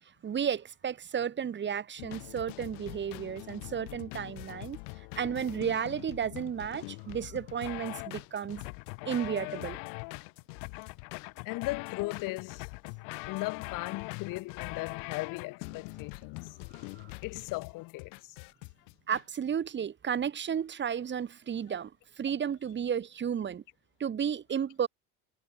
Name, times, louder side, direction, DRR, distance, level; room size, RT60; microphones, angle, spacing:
voice 1, 0.2-4.8 5.2-8.7 9.1-9.8 19.1-21.9 22.2-23.6 24.0-24.9, right 8 dB, 35° right, 1.8 m, -33 dB
sound 1, 2.0-19.2, left 40 dB or more, 90° left, 2.1 m, -42 dB
voice 2, 11.4-12.7 13.3-16.6 17.2-18.4, left 22 dB, 75° left, 1.5 m, -37 dB
cardioid pair, 110°, 33 cm